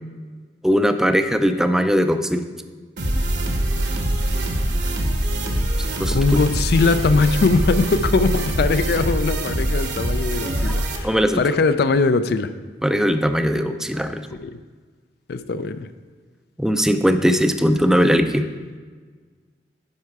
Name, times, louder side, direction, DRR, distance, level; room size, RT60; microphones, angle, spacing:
voice 1, 0.6-2.4 5.8-6.4 10.4-11.4 12.8-14.3 16.6-18.5, equal, 5° right, 8 dB, 0.4 m, -20 dB
sound 1, 3.0-11.0, right 1 dB, 75° right, 1.1 m, -23 dB
voice 2, 6.1-12.5 14.4-14.5 15.3-15.9, left 4 dB, 60° left, 11 dB, 0.4 m, -20 dB
9.8 x 5.7 x 4.7 m, 1.5 s
head